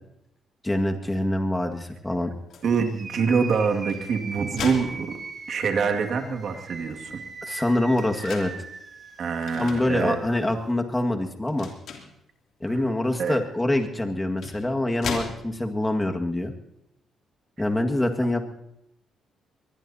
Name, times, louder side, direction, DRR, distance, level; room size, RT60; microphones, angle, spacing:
voice 1, 0.6-2.3 7.5-8.5 9.6-11.7 12.6-16.5 17.6-18.4, left 1 dB, 15° left, 3 dB, 1.9 m, -25 dB
sound 1, 2.5-2.7 3.7-5.7 6.2-6.3 6.6-8.5 9.4-9.9 10.4-10.6 11.5-12.2 13.5-13.6 14.2-15.8, left 6 dB, 70° left, 2.9 m, -38 dB
voice 2, 2.6-5.2 5.5-7.2 9.2-10.2 13.2-13.4, right 5 dB, 60° right, 4 dB, 2.1 m, -25 dB
sound 2, 2.7-10.7, right 4 dB, 40° right, 2.3 m, -40 dB
23.0 x 20.5 x 2.8 m, 0.81 s
cardioid pair, 90°, 0 cm